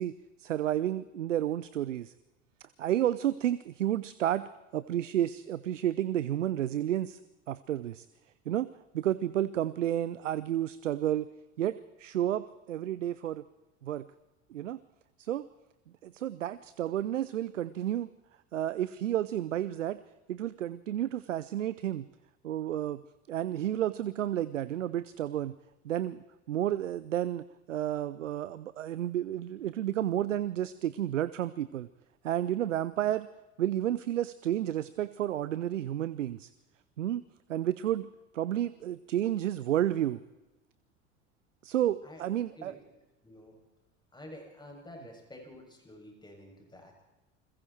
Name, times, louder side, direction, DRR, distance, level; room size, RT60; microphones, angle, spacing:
voice 1, 0.0-2.1 2.8-7.2 7.5-8.1 8.5-11.3 11.6-13.4 13.8-14.1 14.5-14.8 15.2-15.5 16.0-18.1 18.5-20.0 20.3-22.1 22.4-23.0 23.3-25.5 25.8-31.9 32.2-33.3 33.6-36.5 37.0-37.2 37.5-38.1 38.3-40.2 41.6-42.7, right 11 dB, 75° right, 17 dB, 0.8 m, -31 dB
voice 2, 43.2-43.6 44.1-47.0, left 1 dB, 10° left, 1 dB, 7.6 m, -49 dB
29.0 x 21.5 x 4.5 m, 1.1 s
figure-of-eight pair, 70°, 38 cm